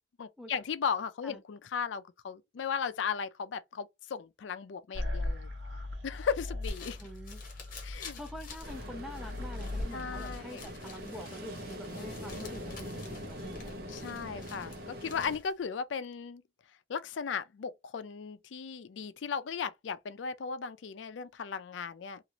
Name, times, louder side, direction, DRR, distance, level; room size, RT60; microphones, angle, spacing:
voice 1, 0.2-5.5 6.0-7.0 7.8-8.2 9.9-10.7 12.0-12.8 13.9-16.4 16.9-22.2, left 6 dB, 90° left, 0.4 m, -36 dB
sound 1, 4.9-10.4, left 1 dB, 85° right, 0.9 m, -38 dB
sound 2, 6.5-15.6, left 5 dB, 50° left, 1.0 m, -51 dB
voice 2, 7.0-7.4 8.1-13.7, equal, ahead, 0.5 m, -46 dB
Ocean, 8.6-15.4, equal, 55° right, 0.8 m, -43 dB
2.9 x 2.5 x 2.7 m
head